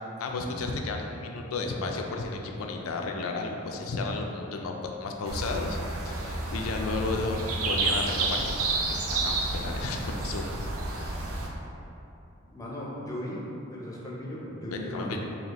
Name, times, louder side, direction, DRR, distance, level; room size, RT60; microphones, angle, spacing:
voice 1, 0.2-5.8 6.0-8.6 8.9-11.2 14.7-15.2, left 3 dB, 90° left, 2 dB, 0.4 m, -33 dB
sound 1, 5.3-11.5, right 3 dB, 85° right, 0.5 m, -30 dB
voice 2, 12.4-13.4 13.7-15.2, left 1 dB, 15° left, -5 dB, 0.7 m, -37 dB
4.2 x 2.8 x 2.9 m, 2.8 s
head